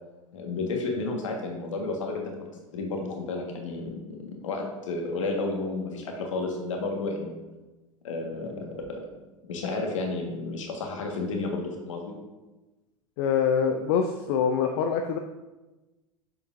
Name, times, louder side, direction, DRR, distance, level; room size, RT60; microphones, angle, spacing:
voice 1, 0.3-7.4 8.0-9.0 9.4-12.1, left 3 dB, 65° left, 2 dB, 1.5 m, -32 dB
voice 2, 13.2-15.2, left 7 dB, 45° left, 5 dB, 0.5 m, -25 dB
7.7 x 6.9 x 2.6 m, 1.1 s
figure-of-eight pair, 85°, 18 cm